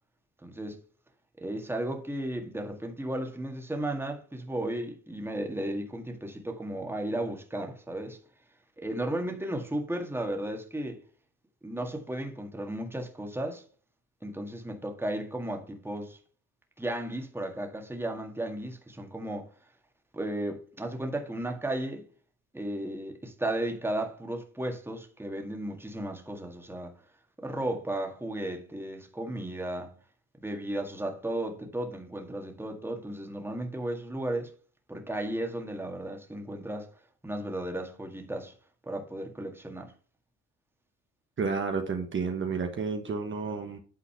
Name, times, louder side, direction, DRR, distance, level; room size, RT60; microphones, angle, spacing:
voice 1, 0.4-0.8 1.4-8.2 8.8-11.0 11.6-13.6 14.2-16.2 16.8-19.5 20.1-22.0 22.5-26.9 27.4-29.9 30.4-34.5 34.9-36.9 37.2-38.5 38.8-39.9, right 1 dB, 10° right, 1.8 m, -34 dB
voice 2, 41.4-43.8, right 5 dB, 40° right, 1.3 m, -31 dB
8.9 x 4.0 x 5.6 m
cardioid pair, 90°, 30 cm